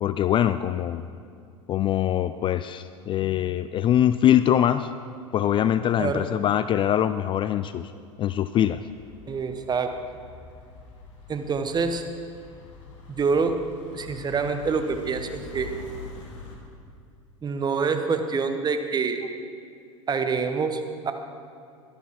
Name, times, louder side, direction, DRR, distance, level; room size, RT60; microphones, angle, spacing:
voice 1, 0.0-1.0 1.7-4.9 5.3-7.9 8.2-8.8, left 11 dB, 30° left, 12 dB, 0.4 m, -23 dB
voice 2, 6.0-6.3 9.3-10.0 11.3-12.0 13.1-13.6 13.9-15.7 17.4-19.4 20.1-21.1, right 5 dB, 25° right, 7 dB, 1.2 m, -26 dB
sound 1, 8.7-16.6, left 4 dB, 65° left, 2.6 m, -44 dB
12.5 x 12.0 x 4.8 m, 2.3 s
hypercardioid pair, 85°, 17 cm